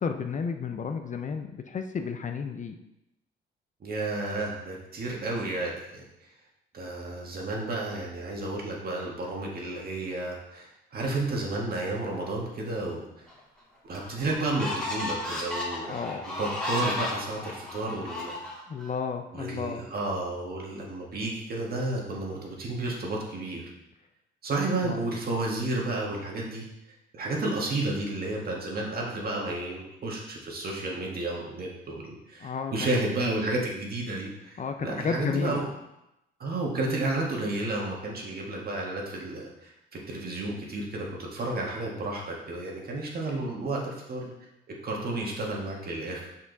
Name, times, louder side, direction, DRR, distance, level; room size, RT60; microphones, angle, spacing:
voice 1, 0.0-2.8 15.9-16.2 18.7-19.8 24.8-25.0 32.4-32.9 34.6-35.6, left 6 dB, 40° left, 6 dB, 0.6 m, -32 dB
voice 2, 3.8-6.0 6.7-13.0 13.8-15.9 16.3-18.3 19.3-23.6 24.4-26.6 27.1-35.7 36.4-44.3 44.8-46.3, right 2 dB, 50° right, -2 dB, 1.7 m, -32 dB
sound 1, 13.3-13.4 13.9-18.9, left 1 dB, 5° left, 2.3 m, -34 dB
5.9 x 4.5 x 4.0 m, 0.88 s
cardioid pair, 90°, 20 cm